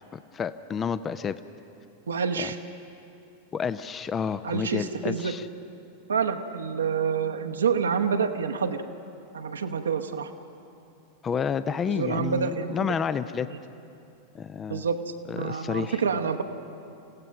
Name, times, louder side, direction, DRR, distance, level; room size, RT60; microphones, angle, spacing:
voice 1, 0.3-1.4 2.4-2.5 3.5-5.5 11.2-13.5 14.3-14.9 15.3-16.0, left 6 dB, 20° left, 14 dB, 0.5 m, -30 dB
voice 2, 2.1-2.6 4.4-5.3 6.1-8.8 9.3-10.3 11.9-13.0 14.7-15.0 15.3-16.4, right 6 dB, 70° right, 5 dB, 1.1 m, -27 dB
28.0 x 16.5 x 5.9 m, 2.6 s
figure-of-eight pair, 90°, 0 cm